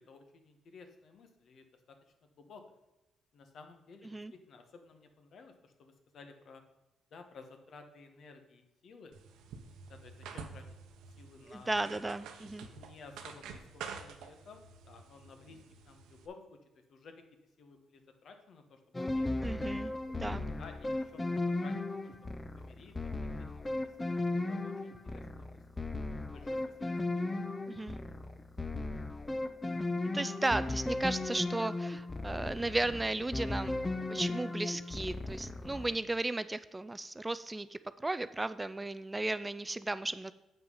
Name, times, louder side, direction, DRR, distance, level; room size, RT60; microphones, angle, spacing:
voice 1, 0.0-1.7 2.4-2.6 3.3-6.6 7.1-9.1 9.9-10.6 11.2-11.7 12.7-16.4 16.9-17.2 17.6-19.3 20.6-22.1 22.6-22.9 23.5-23.9 24.2-25.6 26.3-27.0 27.3-28.2 29.7-29.9, left 4 dB, 60° left, 6 dB, 1.3 m, -55 dB
sound 1, 9.1-16.3, right 6 dB, 90° right, 0.9 m, -49 dB
voice 2, 11.5-12.7 19.4-20.5 27.7-28.0 30.1-33.8 34.1-40.3, right 2 dB, 15° right, 15 dB, 0.3 m, -35 dB
sound 2, 18.9-36.0, left 2 dB, 20° left, 0.7 m, -36 dB
7.8 x 5.7 x 5.5 m, 0.99 s
cardioid pair, 90°, 0 cm